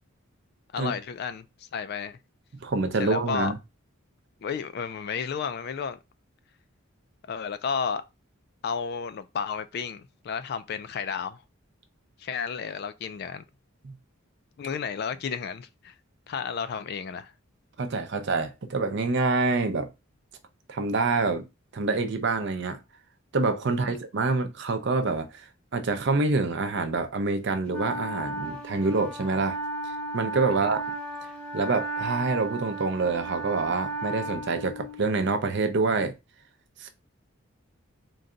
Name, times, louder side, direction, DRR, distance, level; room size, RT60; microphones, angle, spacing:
voice 1, 0.7-2.2 3.0-3.5 4.4-6.0 7.3-8.0 8.6-11.4 12.2-13.4 14.6-15.9 16.3-17.3 23.8-24.0 30.6-30.7, left 6 dB, 50° left, 0.3 m, -32 dB
voice 2, 2.6-3.6 13.8-14.0 17.8-19.9 20.7-21.4 21.7-22.8 23.3-25.4 25.7-29.6 30.1-30.8 31.5-36.2 36.8-36.9, right 3 dB, 55° right, 0.5 m, -26 dB
Wind instrument woodwind instrument, 27.7-35.2, right 2 dB, 5° left, 0.6 m, -34 dB
3.9 x 2.2 x 3.7 m
head